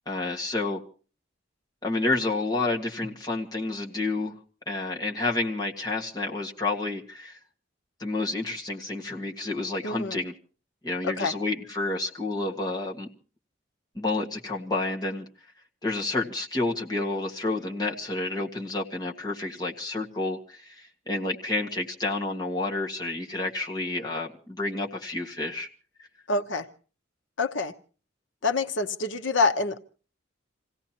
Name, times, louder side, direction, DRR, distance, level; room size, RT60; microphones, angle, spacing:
voice 1, 0.1-0.8 1.8-4.3 4.7-7.4 8.0-10.3 10.8-13.1 14.0-15.2 15.8-25.7, left 2 dB, 20° left, 1.8 m, -30 dB
voice 2, 9.8-10.2 11.0-11.3 26.3-26.7 27.4-27.7 28.4-29.8, left 3 dB, 80° left, 1.0 m, -26 dB
28.0 x 17.0 x 3.0 m
head